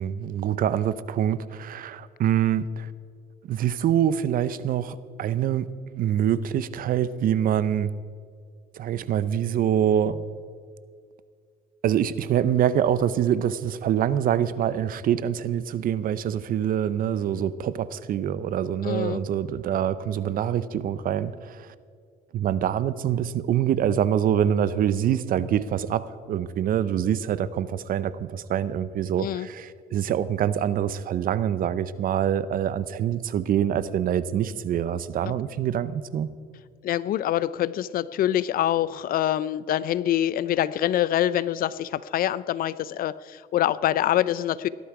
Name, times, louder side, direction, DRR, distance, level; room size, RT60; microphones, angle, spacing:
voice 1, 0.0-2.9 3.4-7.9 8.8-10.2 11.8-21.7 22.3-36.3, right 9 dB, 60° right, 16 dB, 0.7 m, -25 dB
voice 2, 18.8-19.2 29.2-29.5 35.2-35.3 36.8-44.7, left 12 dB, 60° left, 18 dB, 0.5 m, -25 dB
17.5 x 12.5 x 4.8 m, 2.1 s
cardioid pair, 110°, 17 cm